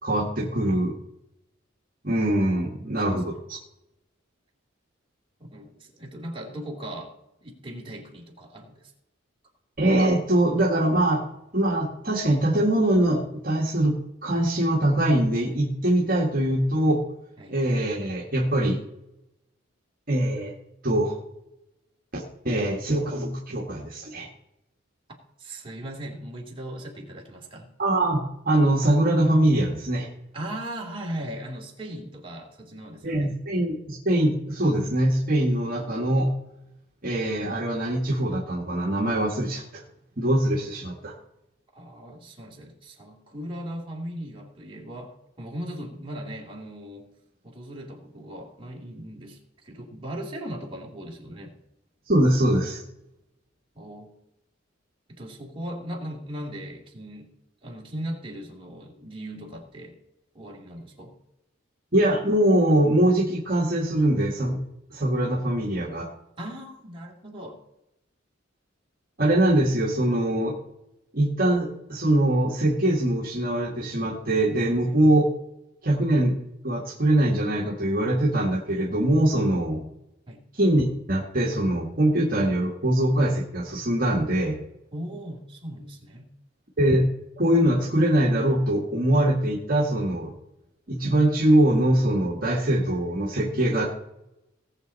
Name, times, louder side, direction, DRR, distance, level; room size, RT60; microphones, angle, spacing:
voice 1, 0.0-0.9 2.0-3.6 9.8-11.2 11.5-13.9 14.2-17.0 17.5-18.8 20.1-20.5 20.8-21.2 22.1-24.3 27.8-30.1 33.0-36.3 37.0-39.8 40.2-41.1 52.1-52.8 61.9-64.6 64.9-66.1 69.2-70.5 71.1-75.3 75.8-76.4 76.6-79.8 80.5-84.6 86.8-87.0 87.4-90.3 90.9-93.9, right 1 dB, 45° right, -2 dB, 1.7 m, -23 dB
voice 2, 5.5-7.1 7.4-8.9 17.4-17.6 25.4-27.7 30.3-33.3 41.7-47.1 47.4-49.4 49.6-51.5 53.7-54.2 55.1-57.3 57.6-60.0 60.3-61.2 66.4-67.6 74.9-75.0 80.3-80.4 84.9-86.3 92.8-92.9, right 1 dB, 25° right, -2 dB, 2.5 m, -38 dB
18.0 x 7.1 x 4.1 m, 0.86 s
head